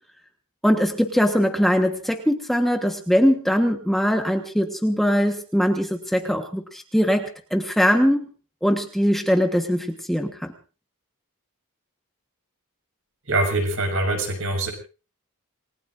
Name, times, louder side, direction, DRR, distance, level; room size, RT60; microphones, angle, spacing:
voice 1, 0.6-8.3 8.6-10.5, equal, ahead, 4 dB, 1.3 m, -21 dB
voice 2, 13.3-14.7, right 2 dB, 60° right, 3 dB, 6.1 m, -23 dB
28.0 x 19.5 x 2.6 m, 0.35 s
head